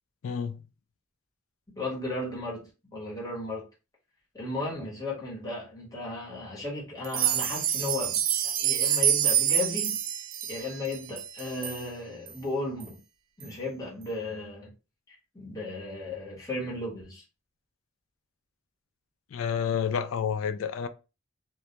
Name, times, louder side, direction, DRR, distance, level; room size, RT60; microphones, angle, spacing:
voice 1, 0.2-0.6 19.3-20.9, left 7 dB, 85° left, 0.3 m, -29 dB
voice 2, 1.8-3.7 4.3-10.0 10.5-13.0 13.4-14.7 15.1-17.2, left 2 dB, 20° left, 1.0 m, -35 dB
sound 1, 7.0-11.8 12.3-12.4 12.8-12.9 13.4-13.5, right 10 dB, 70° right, 0.3 m, -27 dB
2.2 x 2.1 x 2.8 m
head